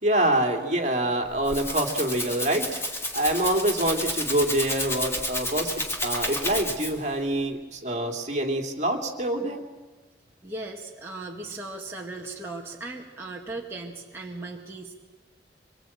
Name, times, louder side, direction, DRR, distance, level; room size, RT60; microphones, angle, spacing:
voice 1, 0.0-2.8 3.1-9.6, right 1 dB, 40° right, 3 dB, 2.7 m, -26 dB
Rattle (instrument), 1.2-7.1, left 1 dB, 15° left, 2.2 m, -31 dB
voice 2, 10.4-14.9, right 2 dB, 15° right, -3 dB, 1.9 m, -37 dB
25.0 x 22.5 x 8.7 m, 1.2 s
head